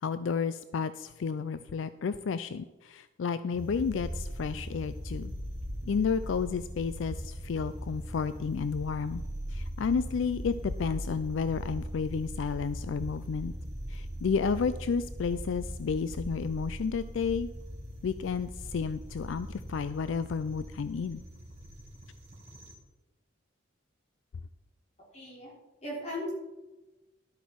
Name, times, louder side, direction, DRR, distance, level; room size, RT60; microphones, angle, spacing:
voice 1, 0.0-5.3 5.8-9.2 9.5-13.5 13.9-17.5 18.0-21.2, left 5 dB, 75° left, 13 dB, 0.4 m, -31 dB
sound 1, 3.5-22.7, equal, 35° right, 2.2 m, -40 dB
voice 2, 25.1-25.5 25.8-26.3, left 1 dB, 35° left, -4 dB, 3.8 m, -36 dB
12.0 x 8.2 x 4.7 m, 1.1 s
head